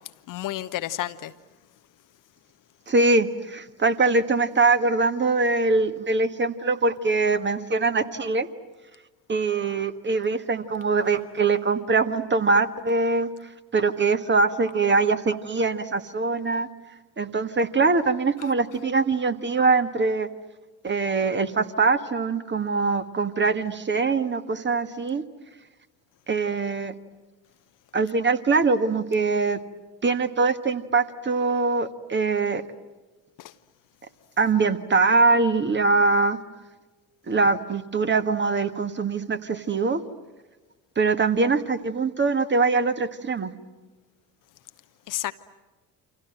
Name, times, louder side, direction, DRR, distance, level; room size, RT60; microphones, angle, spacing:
voice 1, 0.3-1.3 33.4-33.5 45.1-45.3, left 14 dB, 40° left, 12 dB, 0.9 m, -30 dB
voice 2, 2.9-8.5 9.3-13.3 13.7-16.7 17.2-20.3 20.8-25.2 26.3-26.9 27.9-29.6 30.0-32.6 34.4-36.4 37.3-40.0 40.9-43.5, right 4 dB, 25° right, 9 dB, 1.6 m, -23 dB
29.0 x 26.0 x 7.7 m, 1.2 s
figure-of-eight pair, 55°, 47 cm